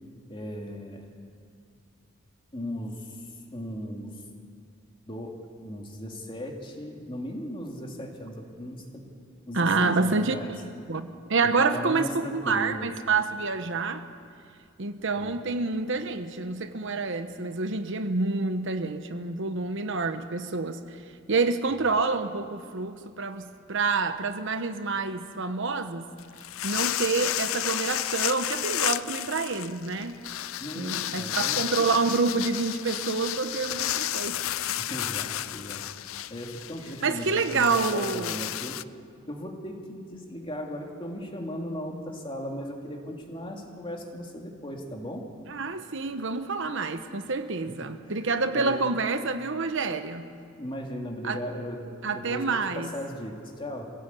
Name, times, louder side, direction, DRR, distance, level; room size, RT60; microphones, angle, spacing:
voice 1, 0.3-1.1 2.5-4.2 5.1-9.1 9.5-10.5 11.4-12.9 15.1-15.4 30.6-31.9 34.8-35.8 36.3-38.8 39.3-45.2 47.8-48.9 50.5-53.9, equal, 25° left, 1 dB, 2.8 m, -37 dB
voice 2, 9.5-10.4 10.9-14.0 14.8-20.8 21.3-26.1 26.6-30.2 30.7-34.4 34.7-34.8 37.0-38.4 45.5-50.3 51.2-51.4 52.0-52.9, right 4 dB, 65° right, 9 dB, 1.1 m, -28 dB
sound 1, 26.2-38.8, left 13 dB, 80° left, 0.5 m, -32 dB
25.5 x 16.5 x 8.4 m, 2.3 s
head